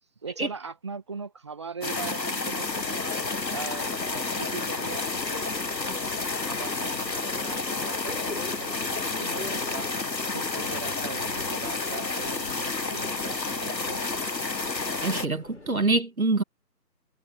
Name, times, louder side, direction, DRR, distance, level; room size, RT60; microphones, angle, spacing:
voice 1, 0.2-3.2 3.5-5.5 6.4-14.0, right 5 dB, 15° right, 2.2 m, -40 dB
sound 1, 1.8-15.3, left 3 dB, 80° left, 1.8 m, -30 dB
Subway metro underground, 2.6-15.8, left 3 dB, 45° left, 4.6 m, -44 dB
voice 2, 15.0-16.4, right 3 dB, 55° right, 2.1 m, -25 dB
figure-of-eight pair, 165°, 49 cm